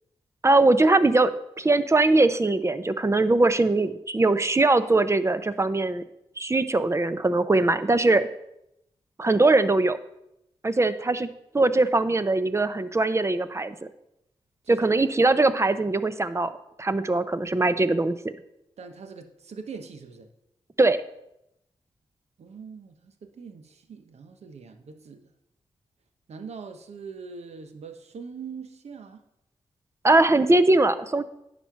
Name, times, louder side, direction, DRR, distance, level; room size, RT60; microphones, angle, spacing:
voice 1, 0.4-6.0 6.4-8.3 9.2-10.0 10.6-11.3 11.5-13.7 14.7-18.4 20.8-21.0 30.0-31.2, right 2 dB, 25° right, 12 dB, 0.7 m, -21 dB
voice 2, 18.8-20.3 22.4-25.3 26.3-29.2, right 5 dB, 75° right, 7 dB, 1.0 m, -42 dB
9.9 x 4.3 x 5.8 m, 0.83 s
cardioid pair, 50°, 11 cm